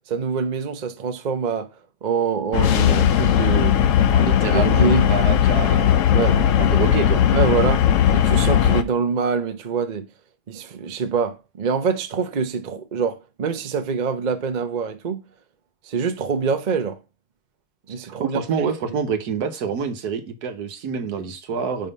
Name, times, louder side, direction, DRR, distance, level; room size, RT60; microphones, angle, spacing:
voice 1, 0.1-1.7 2.0-3.8 4.2-5.0 6.1-6.4 7.3-7.9 8.1-10.1 10.5-15.2 15.8-17.0 17.9-18.7 21.2-21.3, right 5 dB, 40° right, 0.6 m, -25 dB
sound 1, 2.5-8.8, left 10 dB, 65° left, 0.9 m, -17 dB
voice 2, 4.1-7.2 18.2-21.9, right 6 dB, 70° right, 1.4 m, -27 dB
5.3 x 5.3 x 5.3 m
omnidirectional pair, 1.8 m